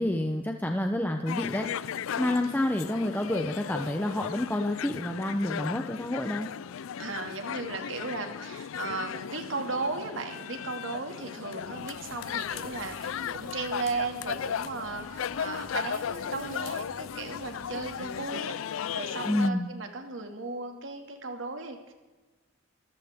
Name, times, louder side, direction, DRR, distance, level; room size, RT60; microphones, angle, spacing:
voice 1, 0.0-6.5 19.2-19.7, left 1 dB, 10° left, 4 dB, 0.8 m, -29 dB
sound 1, 1.3-19.5, left 8 dB, 85° left, 0.4 m, -36 dB
voice 2, 7.0-18.5 18.9-21.9, right 3 dB, 70° right, 4 dB, 2.3 m, -36 dB
sound 2, 11.6-18.2, right 2 dB, 50° right, 5.5 m, -53 dB
26.0 x 15.0 x 3.7 m, 1.2 s
head